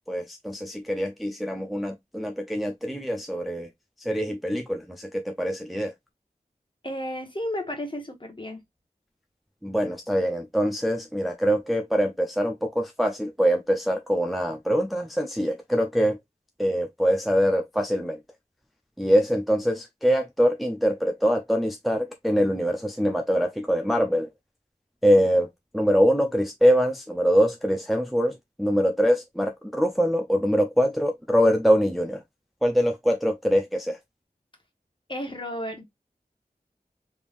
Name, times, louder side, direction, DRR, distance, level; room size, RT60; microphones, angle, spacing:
voice 1, 0.1-3.7 4.0-5.9 9.6-16.2 16.6-18.2 19.0-24.3 25.0-25.5 25.7-32.2 32.6-34.0, equal, ahead, 0.5 m, -24 dB
voice 2, 6.8-8.6 35.1-35.8, left 1 dB, 30° left, 1.3 m, -32 dB
3.5 x 3.4 x 2.5 m
wide cardioid pair, 45°, 16 cm